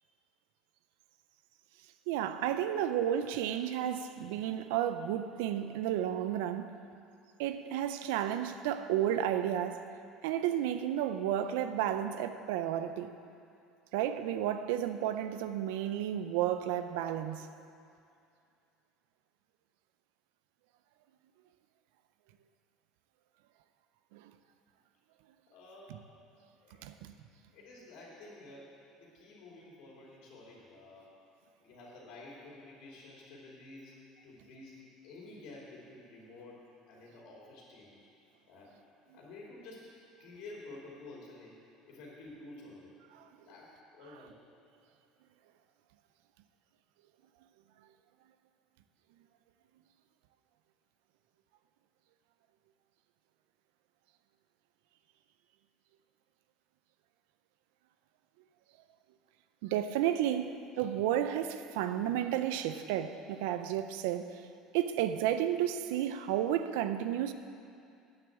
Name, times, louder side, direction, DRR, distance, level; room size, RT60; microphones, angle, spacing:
voice 1, 2.1-6.7 7.4-9.8 10.2-13.1 13.9-17.5 24.1-24.3 26.8-27.1 43.2-43.3 59.6-64.4 64.7-67.3, right 11 dB, 85° right, 10 dB, 0.5 m, -32 dB
voice 2, 25.5-26.0 26.3-26.9 27.5-28.7 29.0-31.1 31.6-34.0 34.2-38.1 38.5-38.7 39.1-39.9 40.2-41.6 41.8-43.0 43.5-44.4, left 2 dB, 70° left, -4 dB, 2.6 m, -51 dB
9.0 x 7.0 x 7.8 m, 2.5 s
supercardioid pair, 115°, 0 cm